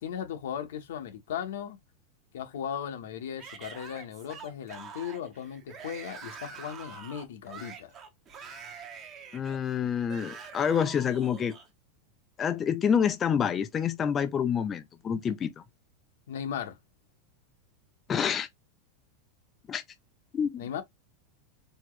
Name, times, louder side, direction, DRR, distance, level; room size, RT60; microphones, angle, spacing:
voice 1, 0.0-1.8 2.3-8.0 16.3-16.8 20.6-20.8, left 9 dB, 80° left, 1.0 m, -37 dB
Yell / Screaming, 3.4-11.7, right 6 dB, 20° right, 0.8 m, -45 dB
voice 2, 9.3-11.6 12.4-15.5 18.1-18.5 19.7-19.8 20.3-20.6, left 7 dB, 15° left, 0.3 m, -27 dB
4.4 x 2.8 x 3.1 m
supercardioid pair, 175°, 0 cm